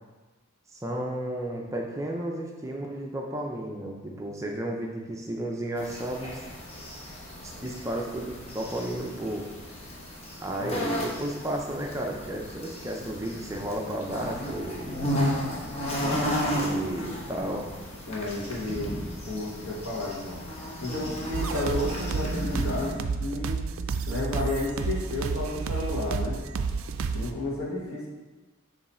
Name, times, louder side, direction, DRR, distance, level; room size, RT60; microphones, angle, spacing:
voice 1, 0.7-6.4 7.6-9.4 10.4-15.0 16.5-17.7, right 1 dB, 15° right, 0 dB, 0.5 m, -33 dB
sound 1, 5.8-22.9, equal, 30° left, 0.9 m, -34 dB
voice 2, 16.7-17.1 18.1-18.9 19.2-20.4 20.8-23.6 24.1-26.4 27.1-28.1, left 2 dB, 85° left, -4 dB, 1.6 m, -32 dB
sound 2, 21.3-27.3, right 4 dB, 75° right, 0.4 m, -30 dB
7.0 x 3.2 x 4.3 m, 1.2 s
head